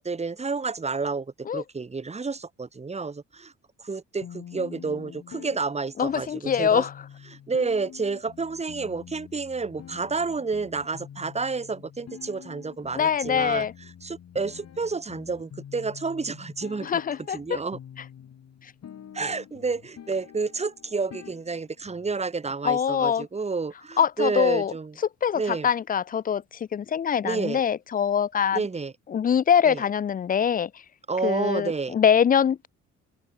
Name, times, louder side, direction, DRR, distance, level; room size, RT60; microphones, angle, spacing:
voice 1, 0.0-3.5 3.8-6.9 7.3-13.7 14.0-17.0 17.3-17.8 19.1-25.0 25.3-25.7 27.2-27.6 28.5-28.9 29.6-29.8 31.1-31.9, right 4 dB, 20° right, 1.4 m, -30 dB
sound 1, 4.2-22.2, left 9 dB, 60° left, 4.3 m, -46 dB
voice 2, 6.0-6.9 12.9-13.7 16.8-17.6 22.6-23.3 24.0-24.7 25.2-26.4 26.7-28.6 29.1-30.7 31.2-32.7, left 8 dB, 30° left, 0.4 m, -23 dB
open air
cardioid pair, 90°, 30 cm